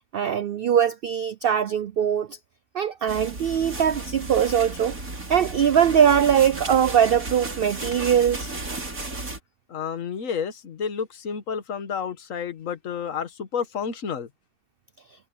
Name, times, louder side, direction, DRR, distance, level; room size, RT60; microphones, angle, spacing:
voice 1, 0.1-2.4 2.7-5.0 5.3-8.5, right 8 dB, 85° right, 0.5 m, -21 dB
sound 1, 3.1-9.4, right 2 dB, 65° right, 5.0 m, -34 dB
voice 2, 9.7-14.3, left 7 dB, 60° left, 1.6 m, -30 dB
omnidirectional pair, 1.6 m